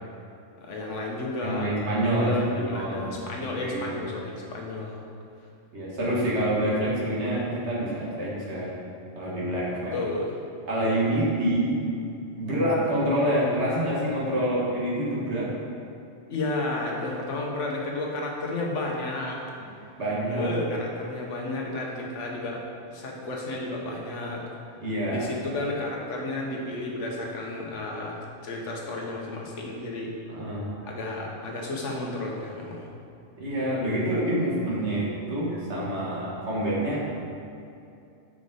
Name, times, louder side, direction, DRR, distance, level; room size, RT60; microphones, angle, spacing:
voice 1, 0.6-1.7 2.0-5.0 9.7-10.4 16.3-19.4 20.3-22.6 22.9-24.4 25.1-30.1 30.8-32.9, left 2 dB, 80° left, -1 dB, 1.3 m, -32 dB
voice 2, 1.4-3.1 3.4-3.9 5.7-8.7 9.2-9.9 10.7-11.8 12.4-15.5 20.0-20.5 24.8-25.2 30.3-30.7 33.4-37.1, right 1 dB, 65° right, -6 dB, 1.7 m, -27 dB
6.4 x 4.8 x 3.9 m, 2.6 s
omnidirectional pair, 1.2 m